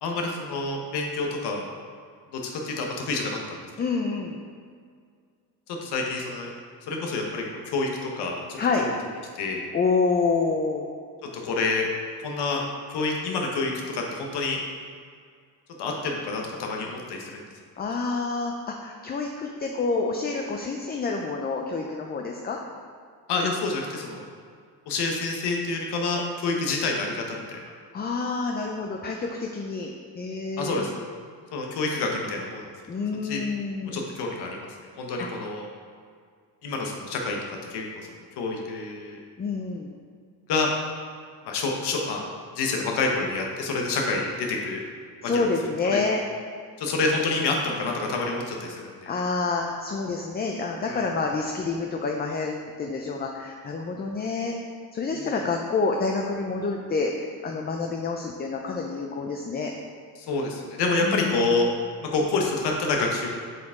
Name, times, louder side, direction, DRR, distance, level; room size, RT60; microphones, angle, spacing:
voice 1, 0.0-1.7 2.3-3.6 5.7-6.5 6.9-8.9 9.3-9.7 11.4-11.8 12.2-12.6 12.9-14.6 15.8-17.4 23.3-24.2 24.9-27.6 30.6-30.9 31.5-32.7 32.9-33.4 33.9-34.7 35.0-35.7 36.6-37.8 38.4-39.2 40.5-40.7 41.4-42.2 42.5-44.8 45.2-45.5 45.9-46.0 46.8-49.1 50.9-51.1 60.2-61.7 62.0-63.3, left 3 dB, 75° left, 1 dB, 1.1 m, -28 dB
voice 2, 3.8-4.4 8.6-8.9 9.7-10.9 17.8-22.6 27.9-30.9 32.9-34.1 35.2-35.3 39.4-39.9 45.2-46.2 49.1-54.6 54.9-57.1 57.4-59.7 60.9-61.5, left 4 dB, 25° left, 2 dB, 0.5 m, -28 dB
7.8 x 4.9 x 3.7 m, 2.1 s
cardioid pair, 115°, 40 cm